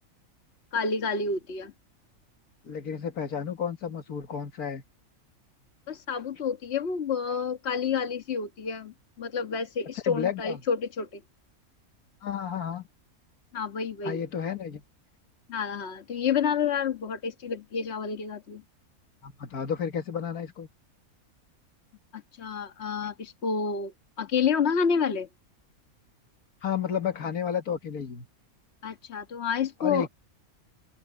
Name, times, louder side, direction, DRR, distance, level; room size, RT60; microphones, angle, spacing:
voice 1, 0.7-1.7 5.9-11.2 13.5-14.2 15.5-18.6 22.1-25.3 28.8-30.1, left 6 dB, 50° left, 1.7 m, -29 dB
voice 2, 2.6-4.8 10.1-10.6 12.2-12.9 14.0-14.8 19.2-20.7 26.6-28.3 29.8-30.1, left 7 dB, 90° left, 2.1 m, -31 dB
open air
omnidirectional pair, 1.5 m